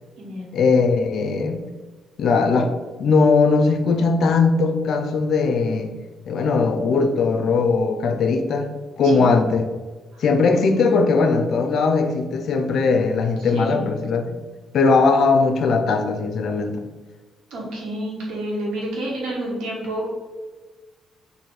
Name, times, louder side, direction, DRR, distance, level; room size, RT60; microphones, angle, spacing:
voice 1, 0.5-1.6 2.2-2.7 3.0-5.9 6.3-8.7 9.0-9.7 10.2-14.2 14.7-16.8, left 4 dB, 65° left, 7 dB, 0.5 m, -19 dB
voice 2, 13.4-13.8 17.5-20.2, right 1 dB, 85° right, -3 dB, 1.5 m, -29 dB
4.1 x 2.6 x 4.8 m, 1.3 s
cardioid pair, 90°, 0 cm